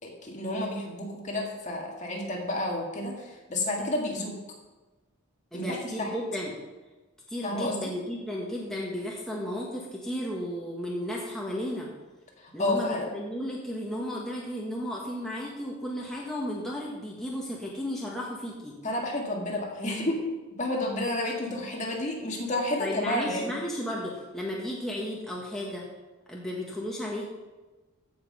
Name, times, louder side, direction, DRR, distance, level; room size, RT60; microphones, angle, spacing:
voice 1, 0.0-4.4 5.5-6.1 7.4-7.9 12.4-13.1 18.8-20.2 20.6-23.5, left 1 dB, 35° left, -1 dB, 2.0 m, -30 dB
voice 2, 5.5-6.6 7.3-11.9 12.5-18.8 22.8-25.9 26.3-27.3, equal, ahead, -4 dB, 1.5 m, -34 dB
15.5 x 5.7 x 5.5 m, 1.2 s
head